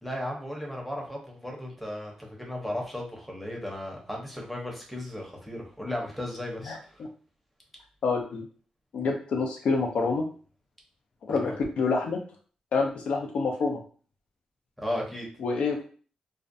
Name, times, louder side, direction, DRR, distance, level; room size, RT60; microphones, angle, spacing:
voice 1, 0.0-7.0 11.3-11.5 14.8-15.3, left 1 dB, ahead, -1 dB, 0.7 m, -35 dB
voice 2, 8.0-8.4 8.9-10.3 11.3-12.2 12.7-13.8 15.4-15.9, left 4 dB, 70° left, 2 dB, 0.5 m, -27 dB
2.4 x 2.1 x 2.5 m, 0.40 s
wide cardioid pair, 120°, 2 cm